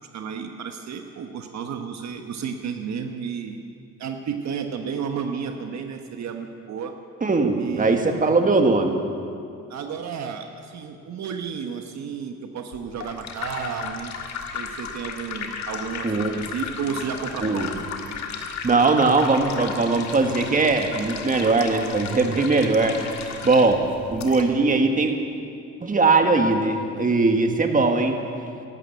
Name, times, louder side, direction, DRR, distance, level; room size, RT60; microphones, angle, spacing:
voice 1, 0.1-3.6 4.0-6.9 7.6-8.1 9.7-14.1 14.5-17.7, right 6 dB, 65° right, 5 dB, 1.1 m, -32 dB
voice 2, 7.2-8.9 16.0-16.3 17.4-17.7 18.6-23.0 23.4-25.1 25.8-28.2, right 3 dB, 25° right, 4 dB, 1.6 m, -20 dB
sound 1, 12.7-24.4, left 6 dB, 65° left, 1.6 m, -35 dB
12.5 x 12.0 x 8.5 m, 2.4 s
cardioid pair, 90°, 30 cm